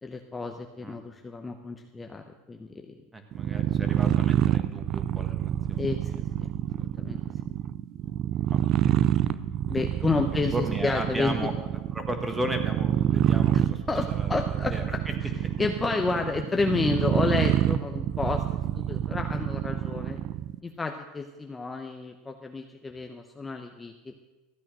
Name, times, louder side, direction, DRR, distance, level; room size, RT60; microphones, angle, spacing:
voice 1, 0.0-2.9 5.8-6.1 6.4-6.5 6.8-7.2 9.7-11.5 13.5-15.3 15.6-18.4 18.7-20.2 20.6-24.1, left 3 dB, 15° left, 4 dB, 0.8 m, -30 dB
voice 2, 3.1-5.9 7.1-7.3 8.5-9.4 10.5-11.5 11.9-13.8 14.2-14.3 14.7-15.1, right 1 dB, 10° right, 6 dB, 1.6 m, -35 dB
sound 1, 3.3-20.6, right 11 dB, 45° right, 0.4 m, -27 dB
14.0 x 8.3 x 6.2 m, 1.2 s
supercardioid pair, 115°, 0 cm